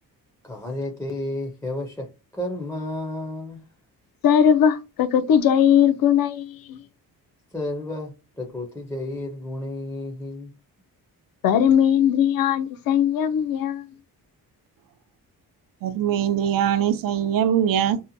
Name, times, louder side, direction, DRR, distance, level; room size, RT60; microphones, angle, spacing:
voice 1, 0.4-3.6 7.5-10.6, left 1 dB, 5° left, 0.4 m, -32 dB
voice 2, 4.2-6.8 11.4-13.8, left 9 dB, 65° left, 0.5 m, -19 dB
voice 3, 15.8-18.0, right 9 dB, 65° right, 0.5 m, -22 dB
2.7 x 2.1 x 2.5 m
wide cardioid pair, 150°, 37 cm